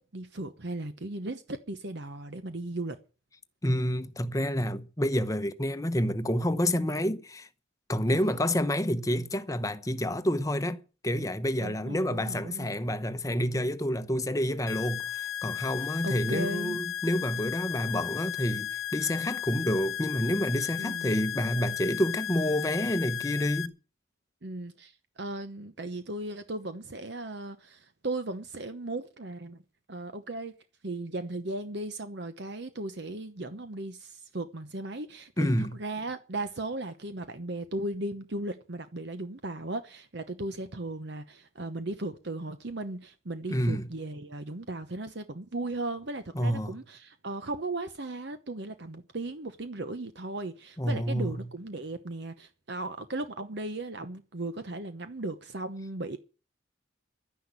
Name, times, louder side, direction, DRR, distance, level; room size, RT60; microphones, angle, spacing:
voice 1, 0.1-3.0 8.1-8.4 11.6-12.7 16.0-16.8 20.8-21.2 24.4-29.6 29.9-30.5 30.8-35.5 35.8-56.2, right 2 dB, 55° right, 1.0 m, -36 dB
voice 2, 3.6-7.5 7.9-23.7 35.4-35.8 43.5-43.9 46.3-46.8 50.8-51.5, equal, 15° left, 0.9 m, -29 dB
sound 1, 14.7-23.7, left 11 dB, 75° left, 0.9 m, -35 dB
11.5 x 10.0 x 8.3 m
head